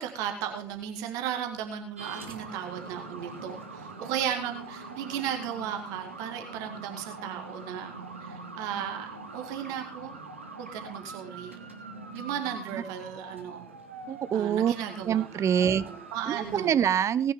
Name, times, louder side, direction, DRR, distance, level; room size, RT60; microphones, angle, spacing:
voice 1, 0.0-7.9 8.2-10.1 10.6-11.6 12.1-13.7 14.3-15.3 15.6-16.7, right 9 dB, 65° right, 5 dB, 2.0 m, -35 dB
sound 1, 2.0-16.7, right 3 dB, 85° right, 1.1 m, -43 dB
voice 2, 14.1-14.7 15.0-15.9 16.3-17.3, right 9 dB, 50° right, 17 dB, 0.7 m, -25 dB
19.0 x 9.4 x 3.7 m, 0.39 s
figure-of-eight pair, 40°, 7 cm